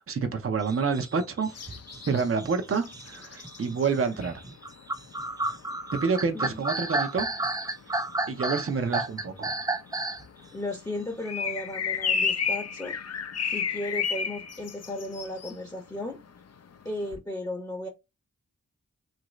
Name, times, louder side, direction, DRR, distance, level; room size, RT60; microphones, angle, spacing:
voice 1, 0.0-1.5 2.1-4.4 5.9-7.3 8.3-9.5, right 5 dB, 45° right, 0.7 m, -28 dB
sound 1, 0.6-10.3, right 2 dB, 15° right, 0.3 m, -32 dB
sound 2, 1.5-16.4 16.7-16.9, left 6 dB, 55° left, 0.5 m, -32 dB
voice 2, 10.5-13.0 13.5-16.2 16.8-17.9, left 1 dB, 10° left, 0.7 m, -35 dB
2.9 x 2.6 x 3.0 m
cardioid pair, 40°, 31 cm